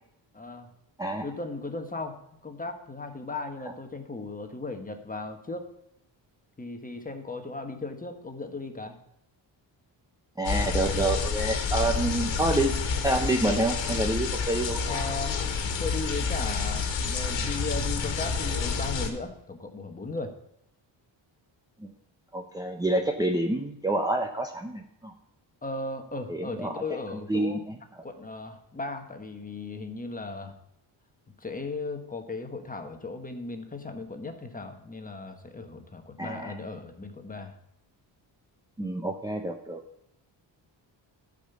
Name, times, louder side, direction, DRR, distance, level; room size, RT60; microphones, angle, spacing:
voice 1, 0.3-0.7 1.2-5.7 6.6-9.0 14.8-15.4 15.8-20.4 25.6-27.6 28.0-30.5 31.4-37.5, left 3 dB, 20° left, 6 dB, 1.2 m, -37 dB
sound 1, 10.4-19.1, left 5 dB, 75° left, 1.7 m, -29 dB
voice 2, 10.4-12.7 13.0-14.8 21.8-21.9 22.3-25.1 26.3-26.8 27.3-28.0 36.2-36.5 38.8-39.8, right 1 dB, 10° right, 2 dB, 0.7 m, -28 dB
13.0 x 5.2 x 6.9 m, 0.79 s
cardioid pair, 130°, 45 cm